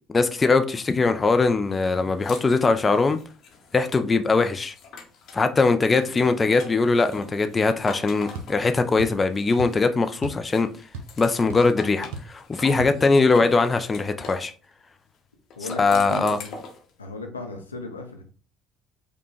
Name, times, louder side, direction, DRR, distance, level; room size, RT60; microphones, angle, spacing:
voice 1, 0.1-3.2 3.7-4.7 5.3-10.7 11.2-14.5 15.8-16.4, left 3 dB, 25° left, 0.4 m, -21 dB
sound 1, 1.8-5.5 5.9-10.0 10.5-14.5 15.5-16.9, left 4 dB, 50° left, 0.8 m, -44 dB
sound 2, 8.3-8.5 9.0-9.2 9.6-9.8 10.2-10.5 10.7-11.2 11.5-11.6 12.1-12.4 12.8-13.0, right 3 dB, 70° right, 0.6 m, -35 dB
voice 2, 15.6-16.6 17.0-18.2, left 2 dB, 85° left, 0.5 m, -36 dB
4.9 x 2.2 x 3.1 m
figure-of-eight pair, 55°, 0 cm